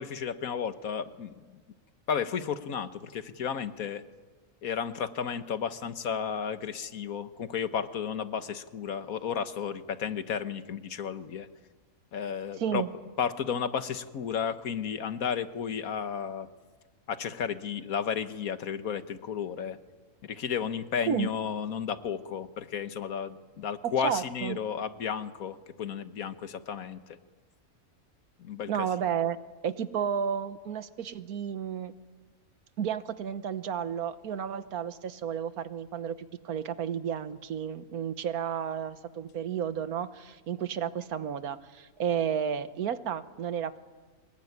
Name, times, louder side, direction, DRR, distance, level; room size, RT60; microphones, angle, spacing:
voice 1, 0.0-1.4 2.1-4.0 4.6-11.5 12.1-12.8 13.2-16.5 17.1-19.8 20.2-27.0 28.4-28.9, left 7 dB, 75° left, 11 dB, 1.6 m, -33 dB
voice 2, 12.6-12.9 21.1-21.3 23.8-24.6 28.7-29.4 29.6-31.9 32.8-43.8, right 8 dB, 90° right, 13 dB, 1.5 m, -32 dB
23.5 x 21.0 x 9.6 m, 1.4 s
omnidirectional pair, 1.5 m